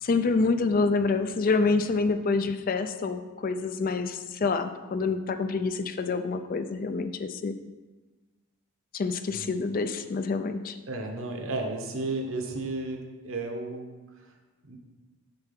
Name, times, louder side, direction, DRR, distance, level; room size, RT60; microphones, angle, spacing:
voice 1, 0.0-7.5 8.9-10.8, left 4 dB, 40° left, 10 dB, 0.4 m, -27 dB
voice 2, 10.9-14.3 14.6-14.8, right 2 dB, 60° right, 3 dB, 1.0 m, -33 dB
6.8 x 4.6 x 5.7 m, 1.2 s
head